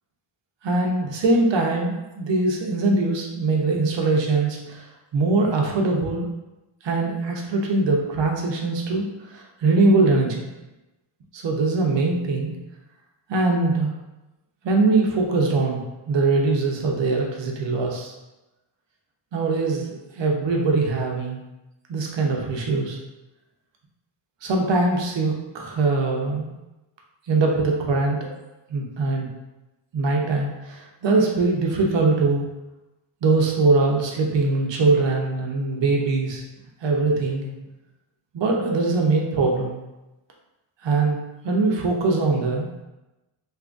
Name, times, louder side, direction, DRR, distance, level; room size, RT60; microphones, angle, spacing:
voice 1, 0.6-4.9 5.1-6.3 6.8-10.4 11.3-12.6 13.3-13.9 14.6-15.8 16.1-18.1 19.3-21.4 21.9-23.0 24.4-26.5 27.3-28.3 28.7-29.3 29.9-32.4 33.2-36.4 36.8-37.5 38.3-39.8 40.8-41.2 41.4-42.7, right 3 dB, 60° right, 0 dB, 0.8 m, -22 dB
2.7 x 2.6 x 3.5 m, 1.0 s
cardioid pair, 80°, 50 cm